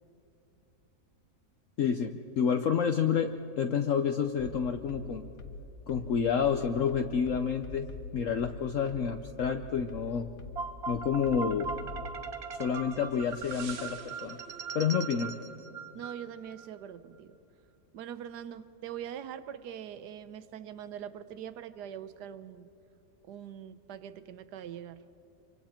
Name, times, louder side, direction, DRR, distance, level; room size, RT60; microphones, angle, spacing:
voice 1, 1.8-5.3 5.9-7.9 8.1-10.3 10.9-11.7 12.6-14.4 14.7-15.3, left 7 dB, 60° left, 6 dB, 1.0 m, -29 dB
sound 1, 4.4-12.2, left 3 dB, 80° left, 1.7 m, -44 dB
sound 2, 10.6-16.7, right 5 dB, 45° right, 1.2 m, -40 dB
voice 2, 15.9-17.4 17.9-22.7 23.2-25.0, right 9 dB, 80° right, 13 dB, 1.4 m, -43 dB
26.5 x 24.5 x 4.4 m, 2.9 s
omnidirectional pair, 1.7 m